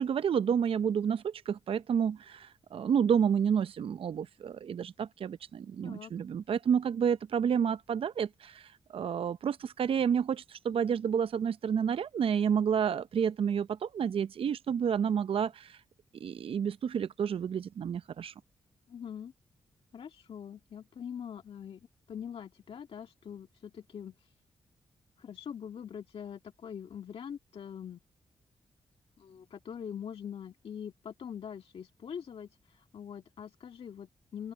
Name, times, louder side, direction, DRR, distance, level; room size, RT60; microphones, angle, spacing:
voice 1, 0.0-15.8 16.1-18.3, right 7 dB, 60° right, 0.6 m, -30 dB
voice 2, 18.9-19.3 19.9-21.8 22.1-24.3 25.2-28.0 29.2-34.5, left 8 dB, 65° left, 1.8 m, -43 dB
open air
supercardioid pair, 40°, 10 cm